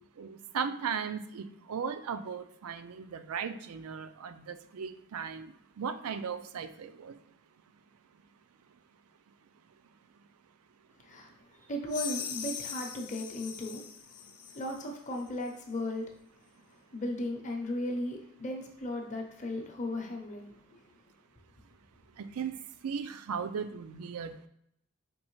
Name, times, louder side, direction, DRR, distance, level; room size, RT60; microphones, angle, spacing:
voice 1, 0.2-5.5 5.8-7.1 22.2-22.6 22.8-24.5, right 6 dB, 80° right, 11 dB, 0.4 m, -37 dB
voice 2, 11.6-13.8 14.5-16.1 16.9-20.5, left 1 dB, 35° left, 2 dB, 0.7 m, -36 dB
sound 1, 11.9-14.9, left 8 dB, 75° left, 0.7 m, -40 dB
5.3 x 3.1 x 3.1 m, 0.73 s
head